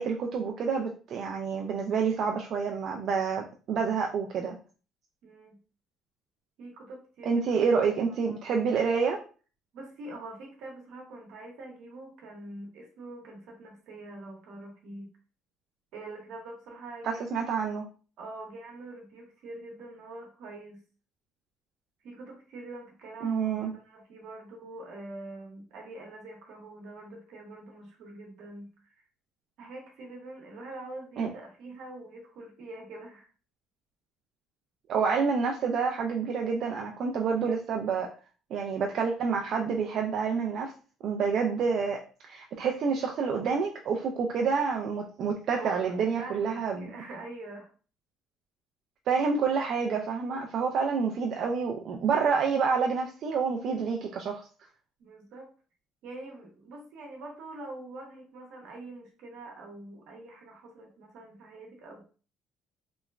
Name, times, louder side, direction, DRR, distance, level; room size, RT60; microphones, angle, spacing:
voice 1, 0.0-4.6 7.2-9.2 17.0-17.8 23.2-23.7 31.2-31.3 34.9-38.1 38.5-40.7 41.0-46.9 49.1-54.5, right 5 dB, 55° right, 2 dB, 0.3 m, -28 dB
voice 2, 5.2-5.6 6.6-7.4 8.2-8.6 9.7-15.1 15.9-17.2 18.2-20.8 22.0-28.9 29.6-33.3 45.5-47.7 55.0-55.5 56.0-62.0, right 2 dB, 75° right, 1 dB, 0.9 m, -44 dB
2.9 x 2.1 x 2.4 m, 0.38 s
cardioid pair, 120°, 0 cm